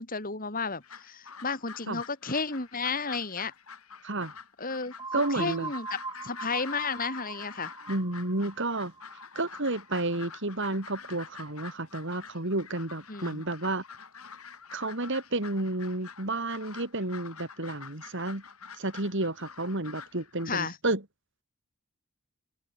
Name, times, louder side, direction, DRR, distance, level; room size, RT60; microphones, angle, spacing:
voice 1, 0.0-3.5 4.6-4.9 5.3-7.7 13.1-13.4 20.5-20.8, left 4 dB, 40° left, 3.5 m, -33 dB
sound 1, 0.6-20.5, left 6 dB, 80° left, 7.2 m, -47 dB
voice 2, 4.0-4.3 5.1-5.7 7.9-8.9 9.3-13.8 14.7-18.4 18.8-21.0, right 2 dB, 55° right, 3.0 m, -31 dB
sound 2, 5.0-10.7, right 4 dB, 15° right, 3.6 m, -42 dB
head